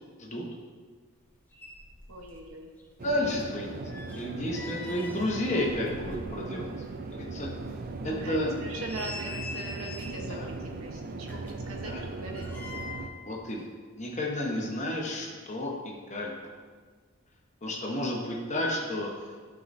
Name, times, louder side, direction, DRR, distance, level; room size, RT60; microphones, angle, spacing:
sound 1, 1.2-1.3 1.5-2.5 2.8-6.7 7.1-7.2 7.7-7.8 8.4-10.3 11.2-13.2 13.5-13.6, left 3 dB, 10° left, 0.6 m, -44 dB
voice 1, 2.1-2.7 8.0-12.9 17.8-18.0, right 2 dB, 75° right, 1 dB, 1.1 m, -41 dB
voice 2, 3.0-3.8 4.1-6.7 7.1-7.5 8.0-8.5 10.1-10.5 11.7-12.0 13.2-13.7 14.0-15.7 16.1-16.4 17.6-19.1, left 1 dB, 30° left, -2 dB, 1.1 m, -31 dB
sound 2, 3.0-13.1, right 3 dB, 40° right, 0.4 m, -38 dB
11.5 x 4.8 x 2.7 m, 1.5 s
head